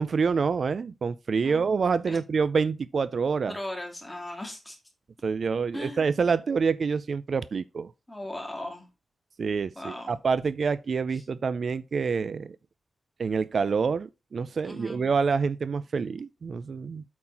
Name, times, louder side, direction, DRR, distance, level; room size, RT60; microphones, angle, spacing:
voice 1, 0.0-3.6 5.2-7.9 9.4-12.6 13.2-17.0, right 5 dB, 50° right, 0.3 m, -27 dB
voice 2, 3.5-4.8 5.7-6.1 8.1-8.9 9.7-10.2 11.1-11.2 14.6-15.0, left 1 dB, 10° left, 2.4 m, -38 dB
8.5 x 4.3 x 5.6 m
wide cardioid pair, 170°, 0 cm